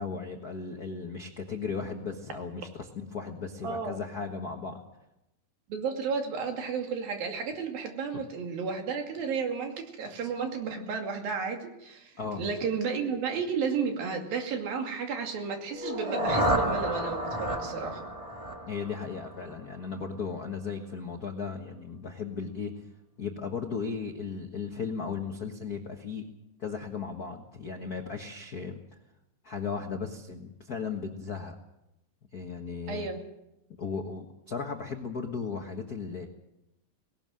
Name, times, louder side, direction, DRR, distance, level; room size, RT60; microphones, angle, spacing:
voice 1, 0.0-4.8 12.2-12.4 18.7-22.7 23.2-26.2 26.6-28.8 29.4-31.6 32.3-33.1 33.8-36.3, left 5 dB, 70° left, 3 dB, 0.9 m, -36 dB
voice 2, 3.6-4.0 5.7-18.0 32.9-33.2, right 5 dB, 80° right, 3 dB, 4.2 m, -33 dB
sound 1, 15.7-19.7, equal, 20° right, 0.8 m, -31 dB
20.0 x 18.0 x 7.7 m, 0.89 s
omnidirectional pair, 4.1 m